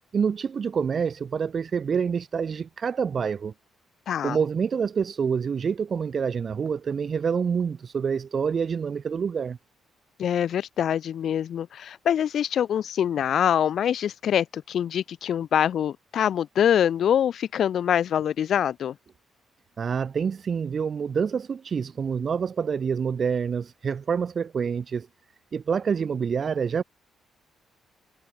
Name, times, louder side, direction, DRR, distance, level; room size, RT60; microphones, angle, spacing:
voice 1, 0.1-3.5 4.2-9.6 19.8-25.1 25.5-26.8, right 6 dB, 45° right, 0.4 m, -27 dB
voice 2, 4.1-4.4 10.2-18.9, left 9 dB, 65° left, 1.0 m, -24 dB
cardioid pair, 90°, 0 cm